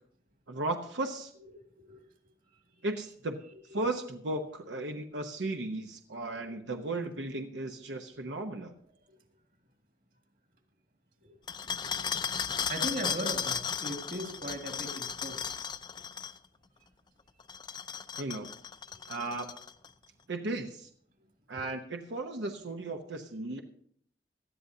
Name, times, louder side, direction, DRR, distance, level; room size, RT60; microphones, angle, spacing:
voice 1, 0.5-1.3 2.8-3.4 3.7-8.7 18.2-18.5 19.1-19.5 20.3-20.9 21.5-23.6, right 2 dB, 90° right, 4 dB, 0.9 m, -35 dB
sound 1, 11.5-16.4 17.4-19.9, left 7 dB, 25° left, 0.4 m, -35 dB
voice 2, 12.7-15.4, equal, 50° right, 4 dB, 1.9 m, -38 dB
18.5 x 12.5 x 2.8 m, 0.63 s
head